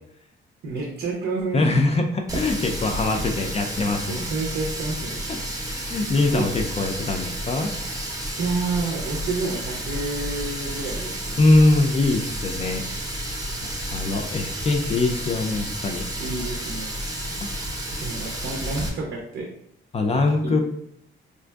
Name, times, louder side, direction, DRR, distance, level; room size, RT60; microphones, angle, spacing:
voice 1, 0.6-1.6 4.1-5.2 6.3-6.5 8.4-11.4 16.2-16.9 18.0-19.5 20.4-20.6, right 3 dB, 70° right, -1 dB, 0.6 m, -29 dB
voice 2, 1.5-4.3 5.3-5.4 5.6-7.7 11.4-12.8 13.1-13.4 13.6-16.3 17.3-17.6 19.9-20.6, left 2 dB, 30° left, 3 dB, 0.4 m, -23 dB
Water tap faucet, 2.3-18.9, right 1 dB, 15° right, 0.6 m, -31 dB
4.4 x 2.5 x 2.3 m, 0.75 s
cardioid pair, 110°, 20 cm